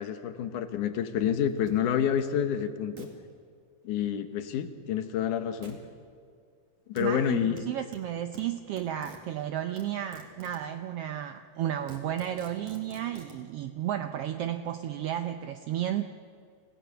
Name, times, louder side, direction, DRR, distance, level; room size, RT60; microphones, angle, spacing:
voice 1, 0.0-3.1 3.8-5.8 6.9-7.6, left 9 dB, 80° left, 9 dB, 2.7 m, -28 dB
sound 1, 1.7-1.8 2.2-2.3 3.0-3.1 5.6-5.8 7.0-7.1 7.6-9.2 9.8-10.7 11.3-11.4 11.7-13.4, right 4 dB, 60° right, 3.5 m, -48 dB
voice 2, 7.0-16.1, right 11 dB, 85° right, 8 dB, 1.3 m, -33 dB
28.0 x 16.5 x 6.9 m, 2.1 s
omnidirectional pair, 3.6 m